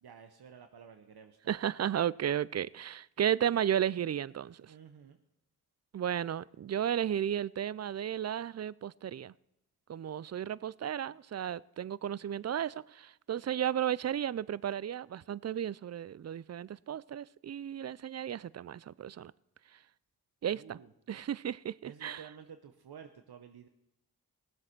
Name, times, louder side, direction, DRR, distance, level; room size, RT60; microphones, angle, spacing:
voice 1, 0.0-1.5 4.6-5.2 20.5-20.9 21.8-23.7, right 7 dB, 80° right, 0.8 m, -52 dB
voice 2, 1.5-4.7 5.9-9.3 9.9-19.3 20.4-20.8 21.1-22.2, right 10 dB, 45° right, 0.4 m, -34 dB
17.5 x 7.7 x 5.9 m
cardioid pair, 40°, 38 cm